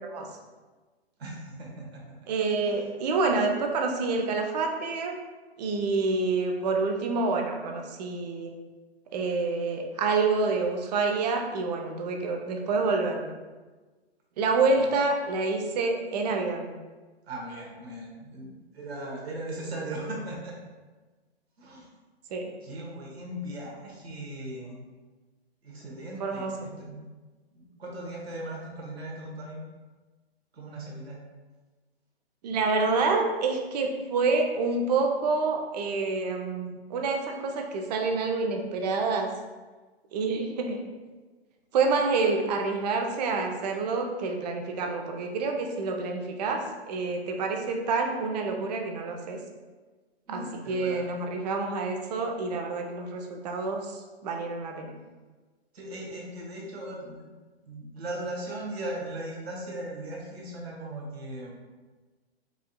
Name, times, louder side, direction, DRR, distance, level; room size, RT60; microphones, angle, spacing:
voice 1, 1.2-2.2 2.6-2.9 14.7-15.0 17.3-20.5 21.6-21.9 22.6-24.8 25.6-27.0 27.5-29.6 30.5-31.2 50.3-51.1 55.7-57.3 57.6-61.5, right 1 dB, 75° right, -3 dB, 1.2 m, -38 dB
voice 2, 2.3-5.1 5.6-8.5 9.1-13.4 14.4-16.7 22.3-22.4 26.2-26.5 32.4-39.3 40.1-40.8 41.7-49.4 50.3-54.9, right 3 dB, 40° right, 3 dB, 0.6 m, -27 dB
4.8 x 2.7 x 2.3 m, 1.3 s
hypercardioid pair, 125°, 32 cm